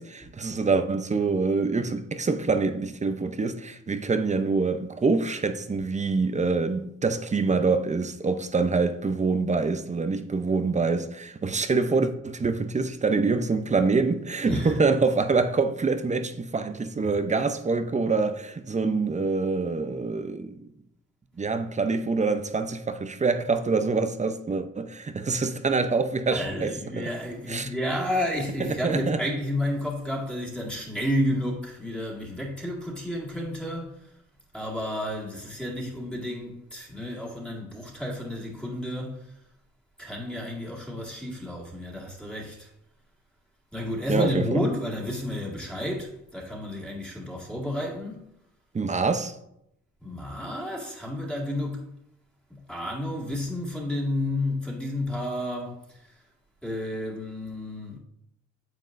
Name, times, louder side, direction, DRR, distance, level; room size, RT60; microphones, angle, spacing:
voice 1, 0.0-20.6 21.4-27.1 27.5-27.7 28.7-29.2 44.1-44.6 48.7-49.4, right 4 dB, 25° right, 0.7 m, -25 dB
voice 2, 14.4-14.8 26.3-34.0 34.5-39.2 40.0-42.7 43.7-48.2 50.0-51.8 52.5-56.0 56.6-58.0, left 1 dB, 5° left, 2.1 m, -31 dB
9.5 x 7.1 x 2.6 m
cardioid pair, 90°, 30 cm